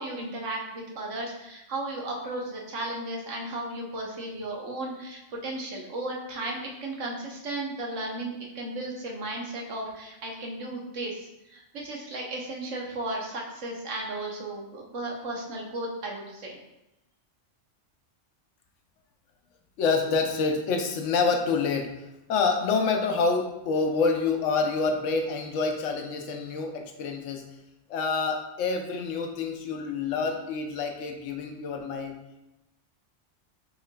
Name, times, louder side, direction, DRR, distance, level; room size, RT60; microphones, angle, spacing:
voice 1, 0.0-16.6, right 2 dB, 80° right, -1 dB, 1.2 m, -35 dB
voice 2, 19.8-21.9 22.3-27.4 27.9-32.2, left 4 dB, 85° left, 4 dB, 1.0 m, -27 dB
5.9 x 3.2 x 2.2 m, 0.93 s
omnidirectional pair, 1.3 m